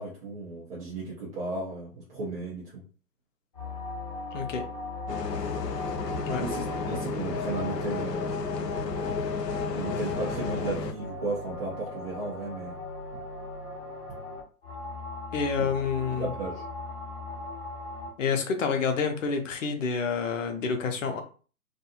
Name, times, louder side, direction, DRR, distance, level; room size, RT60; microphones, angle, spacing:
voice 1, 0.0-2.8 6.3-8.4 9.7-12.8 15.6-15.7 16.1-16.6, right 3 dB, 40° right, -5 dB, 0.9 m, -35 dB
sound 1, 3.5-18.1, left 4 dB, 20° left, 1.1 m, -38 dB
voice 2, 4.3-4.6 6.3-6.4 15.3-16.3 18.2-21.2, left 5 dB, 50° left, 5 dB, 0.7 m, -28 dB
Bus, 5.1-10.9, left 3 dB, 85° left, 0.6 m, -32 dB
2.6 x 2.4 x 2.7 m, 0.37 s
hypercardioid pair, 135°, 48 cm